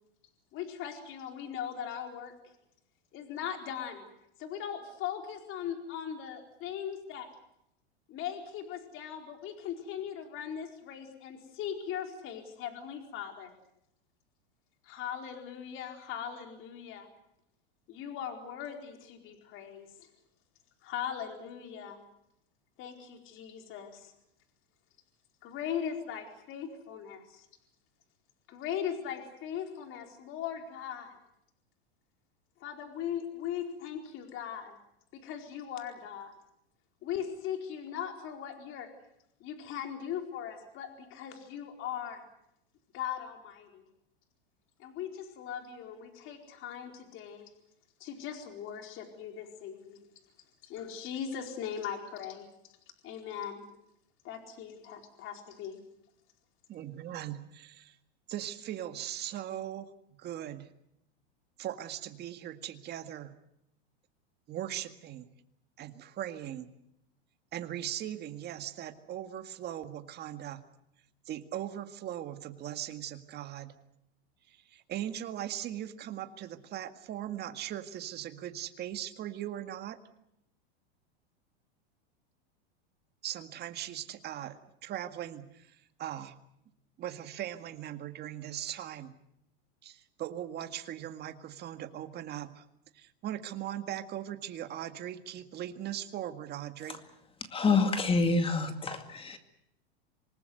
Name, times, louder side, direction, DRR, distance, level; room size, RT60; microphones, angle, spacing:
voice 1, 0.5-2.3 3.1-4.0 4.4-7.3 8.1-13.5 14.8-17.1 17.9-20.1 20.8-22.0 22.8-24.1 25.4-27.5 28.5-31.1 32.6-34.8 35.1-36.3 37.0-38.9 39.4-42.2 42.9-43.8 44.8-47.5 48.0-50.1 50.6-52.5 53.0-53.6 54.2-55.8, left 9 dB, 40° left, 4 dB, 4.5 m, -39 dB
voice 2, 56.7-58.0 58.3-59.9 60.2-60.7 61.6-63.3 64.5-65.3 65.8-66.7 67.5-70.6 71.3-73.7 74.5-80.0 83.2-86.3 87.0-89.1 89.8-92.6 92.9-97.0, right 11 dB, 30° right, 9 dB, 1.9 m, -39 dB
voice 3, 97.5-99.4, left 3 dB, 15° left, 8 dB, 2.2 m, -27 dB
26.0 x 19.5 x 8.0 m, 0.79 s
supercardioid pair, 135°, 31 cm